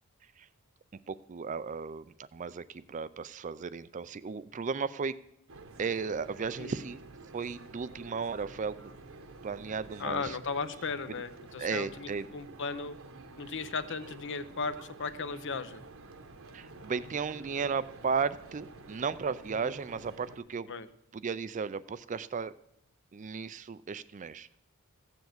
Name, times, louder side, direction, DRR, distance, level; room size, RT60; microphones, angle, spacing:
voice 1, 1.1-5.1 5.8-7.0 7.3-8.9 9.4-10.4 11.6-12.3 16.5-20.7 21.1-22.5 23.1-24.6, right 5 dB, 35° right, 15 dB, 0.4 m, -35 dB
sound 1, 5.5-20.4, right 3 dB, 65° right, 1.1 m, -50 dB
voice 2, 10.0-13.0 13.4-15.8 20.7-20.9, left 4 dB, 55° left, 12 dB, 0.8 m, -36 dB
15.0 x 7.1 x 7.9 m, 0.78 s
head